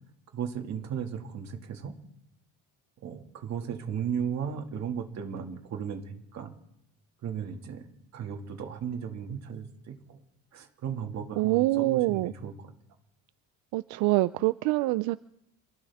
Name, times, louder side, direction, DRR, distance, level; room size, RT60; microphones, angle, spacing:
voice 1, 0.3-1.9 3.0-6.5 7.2-7.9 8.1-10.2 10.5-12.7, right 7 dB, 45° right, 4 dB, 2.1 m, -35 dB
voice 2, 11.4-12.3 13.7-15.2, right 19 dB, 80° right, 15 dB, 0.5 m, -25 dB
27.0 x 14.5 x 3.6 m, 0.78 s
cardioid pair, 155°, 37 cm